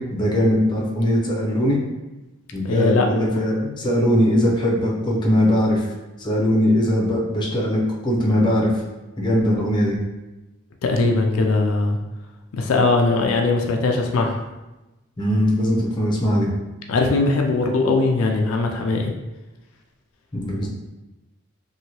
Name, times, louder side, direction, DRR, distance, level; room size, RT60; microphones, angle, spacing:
voice 1, 0.0-1.8 2.5-5.9 6.2-8.7 9.2-10.0 15.2-16.5 20.3-20.7, equal, 20° left, -3 dB, 0.6 m, -20 dB
voice 2, 2.6-3.1 10.8-12.0 12.5-14.4 16.9-19.1, left 3 dB, 80° left, 2 dB, 0.4 m, -20 dB
2.8 x 2.6 x 2.9 m, 1.1 s
head